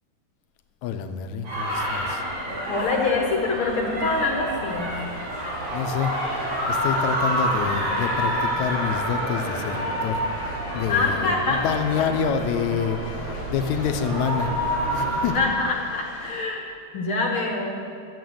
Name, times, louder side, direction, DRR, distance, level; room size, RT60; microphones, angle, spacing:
voice 1, 0.8-2.2 5.7-6.2 6.7-15.6, left 7 dB, 75° left, 7 dB, 2.0 m, -28 dB
sound 1, 1.4-15.4, right 1 dB, 65° right, 4.9 m, -28 dB
voice 2, 2.7-4.9 10.9-11.6 15.2-17.8, left 3 dB, 60° left, 1 dB, 1.5 m, -25 dB
sound 2, 4.9-16.4, left 3 dB, 90° left, 0.7 m, -44 dB
Organ, 7.5-13.2, left 2 dB, 30° left, 1.4 m, -42 dB
14.0 x 7.3 x 7.8 m, 2.5 s
omnidirectional pair, 3.6 m